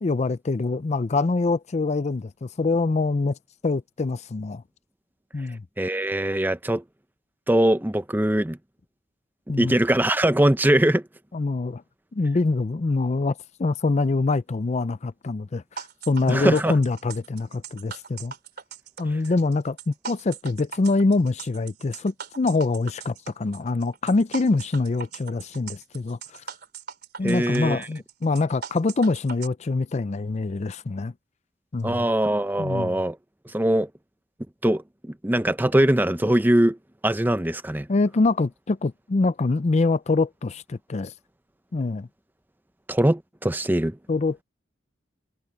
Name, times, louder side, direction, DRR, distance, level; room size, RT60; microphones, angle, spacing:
voice 1, 0.0-3.4 3.6-4.6 5.3-5.6 9.5-9.8 11.3-11.8 12.1-18.3 19.0-26.4 27.2-31.1 31.7-32.1 32.6-33.0 37.9-41.1 41.7-42.1 44.1-44.4, left 3 dB, 35° left, 0.4 m, -25 dB
voice 2, 5.8-6.8 7.5-8.6 9.5-11.0 16.3-16.7 27.2-27.9 31.8-33.2 33.5-33.9 34.6-34.8 35.2-36.8 37.0-37.9 42.9-44.0, right 1 dB, 10° right, 0.6 m, -21 dB
sound 1, 15.8-29.5, right 7 dB, 55° right, 3.5 m, -40 dB
head